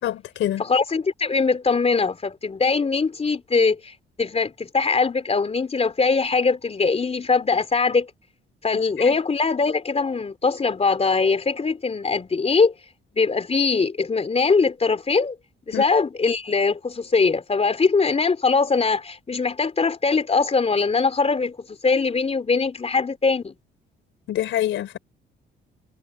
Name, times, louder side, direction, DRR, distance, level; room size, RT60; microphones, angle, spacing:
voice 1, 0.0-0.6 9.0-9.1 15.7-15.8 24.3-25.0, left 12 dB, 80° left, 3.9 m, -26 dB
voice 2, 0.6-8.1 8.6-12.7 13.1-15.4 15.7-23.6, left 4 dB, 30° left, 3.6 m, -21 dB
cardioid pair, 90°, 20 cm